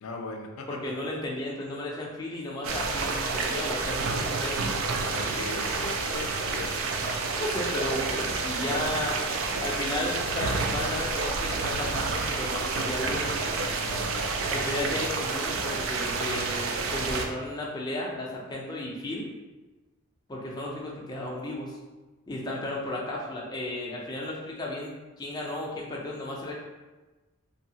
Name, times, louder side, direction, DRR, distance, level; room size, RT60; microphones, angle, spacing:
voice 1, 0.0-1.0 5.1-7.1 13.8-14.3, left 3 dB, 85° left, 2 dB, 0.4 m, -40 dB
voice 2, 0.7-4.7 7.4-9.2 9.6-13.4 14.5-19.3 20.3-21.8 22.3-26.6, left 1 dB, 20° left, -3 dB, 0.4 m, -34 dB
sound 1, 2.6-17.3, right 4 dB, 70° right, 0.3 m, -29 dB
2.6 x 2.3 x 2.7 m, 1.2 s
head